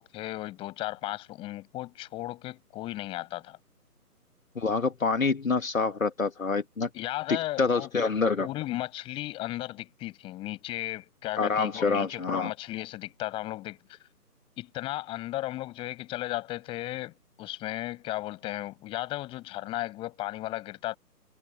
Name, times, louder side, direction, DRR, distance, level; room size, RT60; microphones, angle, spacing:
voice 1, 0.0-3.6 6.9-7.9 8.4-14.0 14.6-21.0, left 16 dB, 10° left, 6.4 m, -35 dB
voice 2, 4.6-6.9 7.3-8.5 11.4-12.5, left 4 dB, 60° left, 2.5 m, -27 dB
figure-of-eight pair, 150°, 47 cm